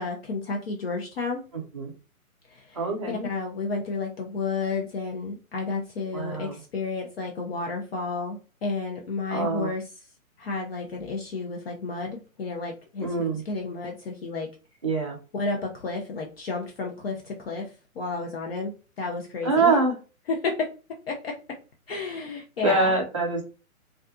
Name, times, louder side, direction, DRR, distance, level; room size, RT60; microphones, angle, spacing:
voice 1, 0.0-1.4 2.5-2.8 3.1-9.8 10.4-14.5 15.3-19.7 20.3-20.7 21.1-21.3 21.9-22.9, left 4 dB, 45° left, 0 dB, 0.5 m, -31 dB
voice 2, 1.5-1.9 2.8-3.3 6.1-6.6 9.3-9.7 13.0-13.4 14.8-15.2 19.4-19.9 22.6-23.4, right 3 dB, 25° right, 0 dB, 0.3 m, -24 dB
2.4 x 2.3 x 2.4 m, 0.33 s
hypercardioid pair, 135°, 43 cm